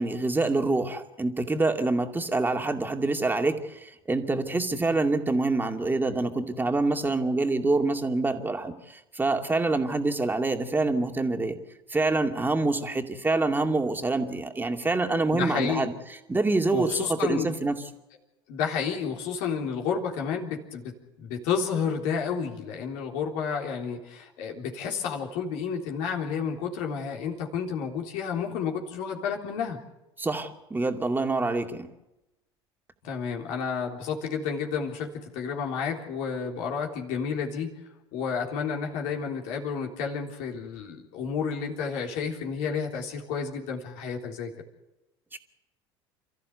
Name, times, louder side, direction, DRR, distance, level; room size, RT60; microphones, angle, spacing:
voice 1, 0.0-11.6 11.9-15.9 16.3-17.8 30.2-31.9 45.3-45.4, right 2 dB, 15° right, 4 dB, 2.5 m, -26 dB
voice 2, 15.3-15.9 16.7-17.5 18.5-29.8 33.0-37.7 38.1-44.5, left 6 dB, 60° left, 1 dB, 3.6 m, -31 dB
29.0 x 14.5 x 8.2 m, 0.97 s
hypercardioid pair, 70°, 14 cm